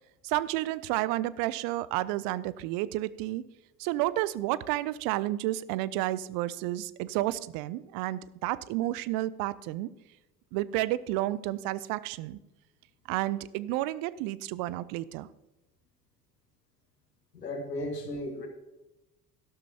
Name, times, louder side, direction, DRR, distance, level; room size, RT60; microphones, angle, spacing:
voice 1, 0.2-3.4 3.8-9.9 10.5-12.4 13.1-15.3, right 16 dB, 45° right, 18 dB, 0.6 m, -31 dB
voice 2, 17.3-18.5, left 1 dB, 85° left, 4 dB, 1.8 m, -35 dB
13.0 x 12.0 x 2.9 m, 1.0 s
figure-of-eight pair, 70°, 47 cm